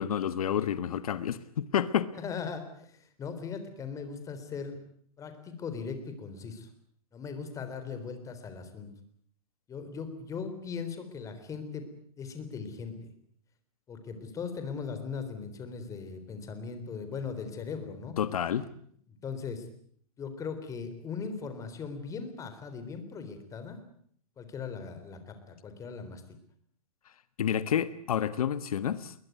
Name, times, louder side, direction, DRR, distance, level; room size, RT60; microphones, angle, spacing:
voice 1, 0.0-2.1 18.2-18.6 27.4-29.1, left 9 dB, 80° left, 1.3 m, -29 dB
voice 2, 2.1-4.8 5.2-6.7 7.1-8.9 9.7-11.8 12.2-13.1 13.9-18.2 19.1-19.7 20.2-23.8 24.4-26.2, left 5 dB, 15° left, 3.8 m, -39 dB
21.5 x 20.5 x 9.2 m
hypercardioid pair, 145°, 18 cm